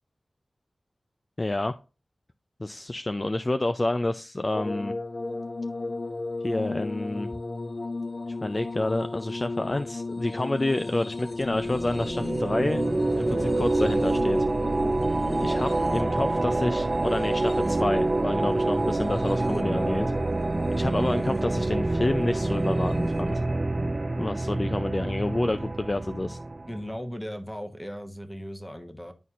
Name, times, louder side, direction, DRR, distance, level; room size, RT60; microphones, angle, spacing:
voice 1, 1.4-1.7 2.6-4.9 6.4-7.3 8.3-12.8 13.2-14.5 15.4-20.1 20.8-23.4 24.2-26.4, left 2 dB, 35° left, 0.4 m, -28 dB
sound 1, 4.5-19.8 20.6-21.4 22.8-22.9, left 3 dB, 70° left, 0.8 m, -36 dB
sound 2, 11.4-26.8, right 2 dB, 40° right, 0.4 m, -26 dB
voice 2, 19.1-20.1 26.7-29.1, equal, 10° left, 1.0 m, -36 dB
11.0 x 4.2 x 2.4 m
wide cardioid pair, 65°, 0 cm